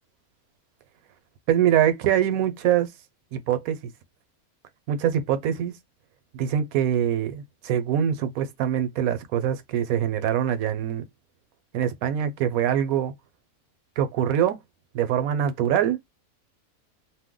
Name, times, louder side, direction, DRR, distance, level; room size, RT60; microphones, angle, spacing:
voice 1, 1.5-2.9 3.3-3.8 4.9-5.8 6.3-11.0 11.7-13.1 14.0-14.6 14.9-16.0, right 10 dB, 75° right, 1.0 m, -24 dB
2.6 x 2.1 x 3.6 m
omnidirectional pair, 1.6 m